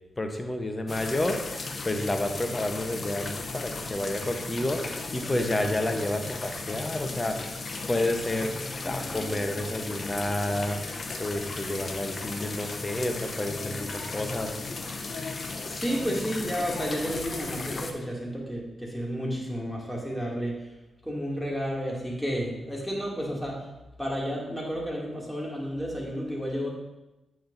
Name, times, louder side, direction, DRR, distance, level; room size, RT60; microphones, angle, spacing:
voice 1, 0.2-1.4 1.8-7.4 7.9-8.5 8.8-10.8 11.2-14.6, left 1 dB, 25° left, 5 dB, 1.0 m, -30 dB
sound 1, 0.9-17.9, left 3 dB, 50° left, 0.8 m, -36 dB
voice 2, 15.7-20.6 21.0-23.6 24.0-26.7, equal, ahead, -3 dB, 2.6 m, -31 dB
8.7 x 6.2 x 2.7 m, 0.99 s
supercardioid pair, 50°, 0 cm